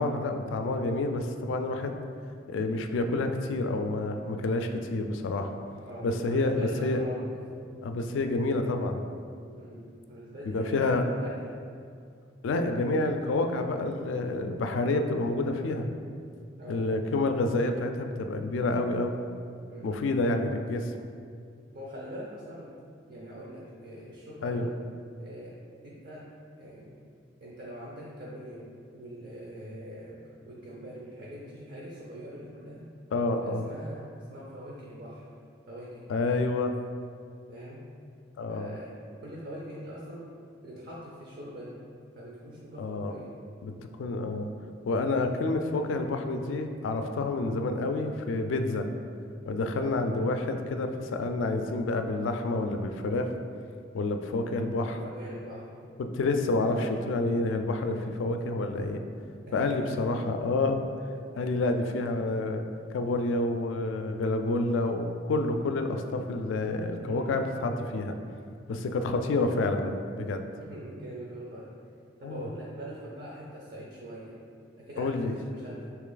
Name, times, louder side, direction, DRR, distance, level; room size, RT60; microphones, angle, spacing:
voice 1, 0.0-2.0 2.5-5.5 6.0-7.0 7.8-9.0 10.4-11.0 12.4-15.9 16.7-19.2 19.8-20.9 24.4-24.7 33.1-33.7 36.1-36.8 38.4-38.7 42.8-43.1 43.6-43.7 44.0-44.5 44.8-48.9 49.5-53.3 53.9-55.0 56.0-59.0 59.5-60.9 61.4-62.6 62.9-68.2 68.7-70.5 72.2-72.5 75.0-75.3, left 2 dB, 85° left, 7 dB, 0.3 m, -28 dB
voice 2, 5.9-7.4 9.4-11.6 16.6-16.9 19.7-20.0 21.7-22.7 23.1-24.6 25.2-25.6 25.8-26.3 26.6-26.9 27.4-32.9 33.4-35.3 35.7-36.1 37.5-37.9 38.5-38.9 39.2-40.3 40.6-41.8 42.2-43.3 45.1-45.3 49.8-50.0 54.9-55.7 56.6-56.8 59.5-60.3 66.8-67.5 70.5-71.7 72.2-74.4 74.8-75.9, equal, 55° right, -4 dB, 0.5 m, -43 dB
3.2 x 2.9 x 3.8 m, 2.3 s
head